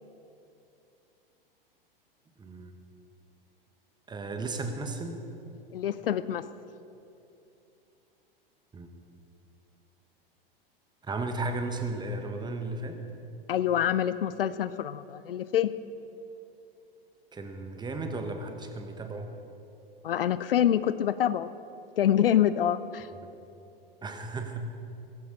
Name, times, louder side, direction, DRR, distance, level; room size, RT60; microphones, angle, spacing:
voice 1, 2.4-2.7 4.1-5.2 8.7-8.9 11.0-13.0 17.3-19.3 24.0-24.7, right 2 dB, 15° right, 6 dB, 1.3 m, -34 dB
voice 2, 5.7-6.5 13.5-15.7 20.0-21.5 22.0-23.1, left 10 dB, 70° left, 15 dB, 0.5 m, -26 dB
16.5 x 15.0 x 4.0 m, 2.8 s
figure-of-eight pair, 95°, 29 cm